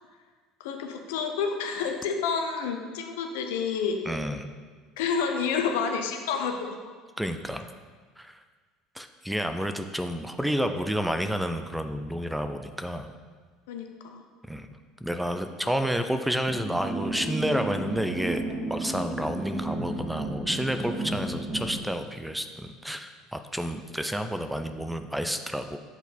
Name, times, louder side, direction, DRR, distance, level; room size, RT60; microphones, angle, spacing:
voice 1, 0.6-4.0 5.0-6.8 13.7-14.2 15.6-15.7, left 6 dB, 85° left, 5 dB, 0.7 m, -29 dB
voice 2, 4.1-4.5 7.2-7.7 8.2-8.4 9.0-13.1 14.5-14.7 15.0-18.4 18.7-25.8, equal, 5° right, 8 dB, 0.4 m, -30 dB
sound 1, 16.5-21.8, right 2 dB, 30° right, 1.8 m, -33 dB
7.0 x 4.0 x 4.2 m, 1.5 s
supercardioid pair, 85°, 0 cm